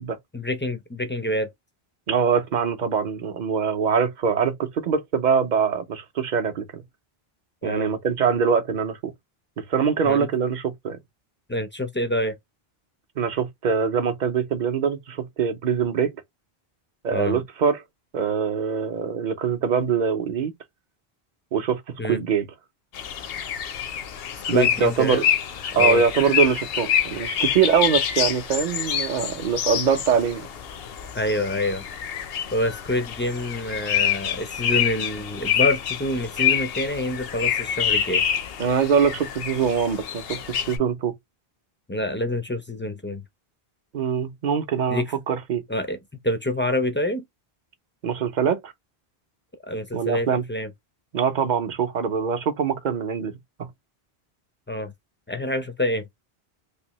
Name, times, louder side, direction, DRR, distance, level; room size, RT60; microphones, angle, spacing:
voice 1, 0.3-1.5 7.6-7.9 10.0-10.3 11.5-12.4 17.1-17.4 22.0-22.2 24.5-25.3 25.7-26.0 31.1-31.9 32.5-38.2 41.9-43.2 44.9-45.0 45.7-46.0 46.2-47.2 49.7-50.7 54.7-54.9 55.3-56.0, left 1 dB, 20° left, 0.3 m, -26 dB
voice 2, 2.1-6.8 7.6-9.1 9.6-11.0 13.2-16.1 17.0-17.8 18.1-20.5 21.5-22.5 24.5-25.2 25.8-30.5 38.6-41.1 43.9-45.6 48.0-48.7 49.9-50.4 51.1-53.7, right 6 dB, 50° right, 0.7 m, -23 dB
sound 1, 22.9-40.8, left 9 dB, 70° left, 0.8 m, -27 dB
3.3 x 2.6 x 2.9 m
omnidirectional pair, 1.0 m